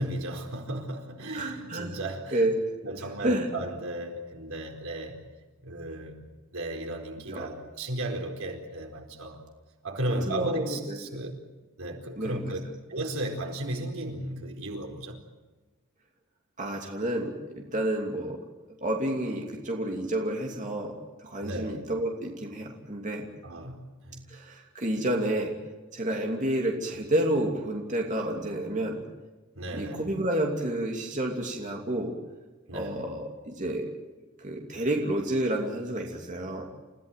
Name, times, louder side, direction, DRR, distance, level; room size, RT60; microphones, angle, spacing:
voice 1, 0.0-2.4 2.8-5.2 5.6-6.3 6.5-9.4 9.8-11.5 11.8-12.6 12.9-15.2 21.4-21.7 23.4-24.3 29.5-30.1 32.7-33.0, right 1 dB, 80° right, 4.5 m, -35 dB
voice 2, 1.3-1.9 2.3-2.5 3.2-3.5 7.3-7.5 10.3-11.0 12.2-12.4 16.6-18.4 18.8-23.3 24.3-25.5 25.9-29.0 29.7-32.1 32.7-33.9 34.4-36.7, right 1 dB, 35° right, 2.8 m, -30 dB
30.0 x 15.5 x 9.2 m
head